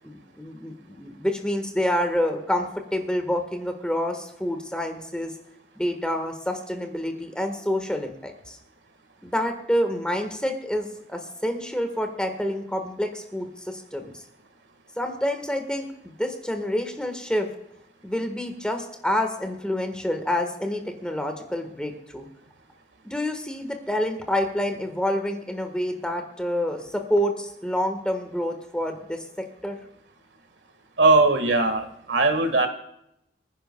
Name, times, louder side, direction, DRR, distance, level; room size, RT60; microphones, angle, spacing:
voice 1, 0.0-5.3 5.8-8.6 9.2-14.1 15.0-17.5 18.0-22.3 23.0-29.8, left 1 dB, 5° left, 5 dB, 1.4 m, -28 dB
voice 2, 31.0-32.7, right 3 dB, 85° right, 8 dB, 1.7 m, -20 dB
24.5 x 10.0 x 2.3 m, 0.80 s
head